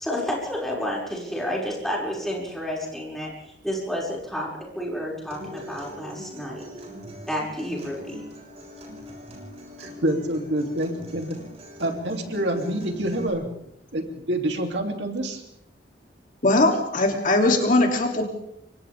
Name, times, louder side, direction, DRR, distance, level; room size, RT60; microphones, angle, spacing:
voice 1, 0.0-6.6 7.3-8.2, equal, ahead, -4 dB, 6.3 m, -30 dB
Acoustic guitar, 5.3-13.3, equal, 40° right, 7.6 m, -42 dB
voice 2, 9.8-11.4 11.8-13.5 13.9-15.4, right 1 dB, 75° right, 3 dB, 3.2 m, -27 dB
voice 3, 16.4-18.2, left 2 dB, 50° left, 2 dB, 3.1 m, -20 dB
29.5 x 25.0 x 3.7 m, 0.74 s
head